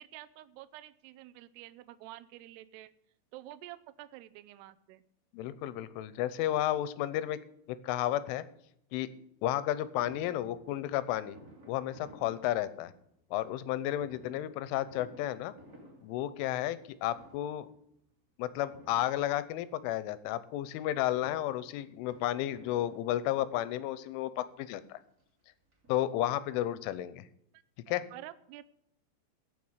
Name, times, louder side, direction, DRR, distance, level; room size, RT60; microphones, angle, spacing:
voice 1, 0.0-2.9 3.3-5.0 27.5-27.6 28.1-28.6, right 15 dB, 85° right, 13 dB, 2.3 m, -49 dB
voice 2, 5.3-7.4 7.7-8.4 8.9-9.1 9.4-11.4 11.7-12.9 13.3-15.5 16.0-17.7 18.4-25.0 25.9-27.2 27.9-28.0, left 13 dB, 90° left, 15 dB, 3.3 m, -32 dB
Fireworks, 10.0-13.2 14.0-16.9 17.1-17.8 18.7-19.8 20.9-23.6 24.4-24.5 24.8-24.9 25.2-26.4 26.7-26.8 27.0-27.1, right 1 dB, 25° right, 2.3 m, -56 dB
16.0 x 6.2 x 7.9 m, 0.73 s
omnidirectional pair, 5.5 m